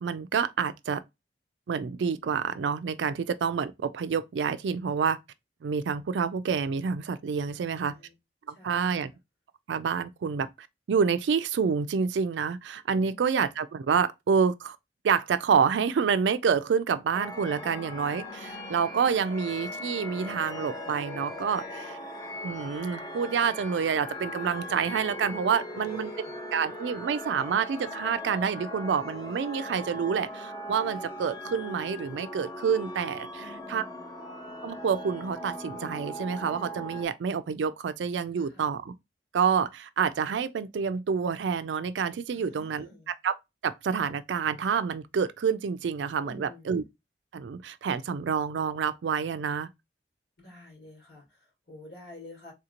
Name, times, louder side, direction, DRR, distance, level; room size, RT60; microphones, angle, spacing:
voice 1, 0.0-1.0 1.7-5.2 5.6-7.9 8.5-9.1 9.7-14.8 15.0-22.0 22.4-26.1 26.5-33.8 34.6-38.9 39.3-43.4 43.6-46.8 47.3-49.7, right 6 dB, 85° right, 0.4 m, -28 dB
voice 2, 7.5-8.1 8.5-9.0 12.9-13.3 17.2-17.7 25.4-26.3 33.4-34.1 38.4-38.7 42.3-43.1 46.2-46.7 50.4-52.5, left 2 dB, 80° left, 1.9 m, -50 dB
sound 1, 17.1-37.1, equal, 20° left, 0.7 m, -39 dB
3.5 x 2.8 x 2.4 m
head